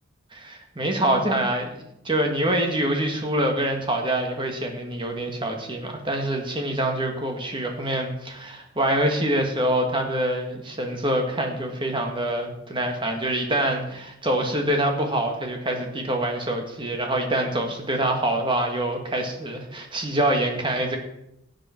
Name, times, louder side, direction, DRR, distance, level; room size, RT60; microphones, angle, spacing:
voice 1, 0.3-21.0, right 1 dB, 25° right, 3 dB, 1.9 m, -25 dB
16.0 x 8.9 x 4.6 m, 0.82 s
head